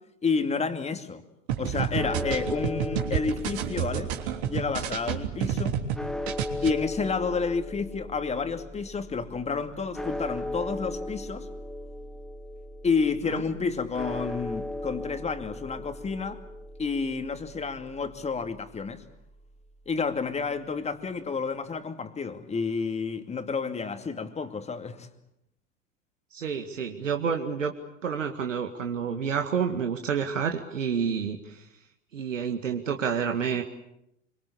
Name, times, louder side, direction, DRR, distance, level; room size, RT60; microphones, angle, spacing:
voice 1, 0.2-1.2 1.6-4.1 4.4-5.7 6.6-11.5 12.8-16.4 16.8-19.0 19.9-25.1, left 5 dB, 15° left, 8 dB, 2.5 m, -30 dB
sound 1, 1.5-6.0 6.3-6.7, right 9 dB, 60° right, 3.4 m, -29 dB
sound 2, 2.0-20.2, left 1 dB, ahead, 1.0 m, -38 dB
voice 2, 26.3-27.7 28.0-31.6 32.1-33.6, right 7 dB, 80° right, 4 dB, 2.1 m, -29 dB
25.5 x 24.0 x 8.6 m, 0.82 s
figure-of-eight pair, 90°, 37 cm